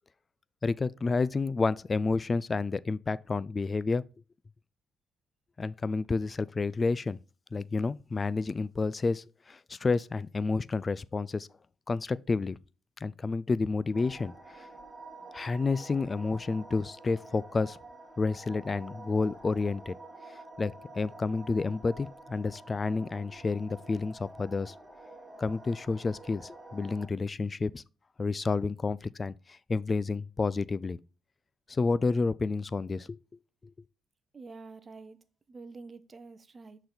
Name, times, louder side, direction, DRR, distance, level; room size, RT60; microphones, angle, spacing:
voice 1, 0.6-4.0 5.6-7.2 7.5-11.5 11.9-12.6 13.0-14.7 15.3-17.8 18.2-19.9 20.6-24.7 25.4-27.8 28.2-31.0 31.7-33.2, left 4 dB, 30° left, 0.3 m, -30 dB
sound 1, 13.9-27.1, right 2 dB, 20° right, 1.6 m, -49 dB
voice 2, 34.3-35.2 35.5-36.8, right 3 dB, 35° right, 0.6 m, -47 dB
6.6 x 4.0 x 4.3 m
cardioid pair, 90°, 0 cm